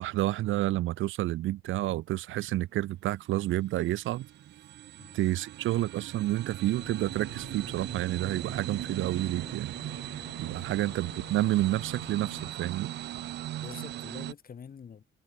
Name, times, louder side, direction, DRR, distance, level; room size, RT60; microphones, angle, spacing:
voice 1, 0.0-4.3 5.1-9.7 10.1-12.9, right 15 dB, 80° right, 0.8 m, -29 dB
sound 1, 2.7-14.3, right 14 dB, 60° right, 0.4 m, -39 dB
Organ, 6.7-12.5, left 14 dB, 85° left, 4.1 m, -50 dB
voice 2, 10.4-10.9 13.6-15.0, left 7 dB, 45° left, 6.6 m, -46 dB
cardioid pair, 90°, 20 cm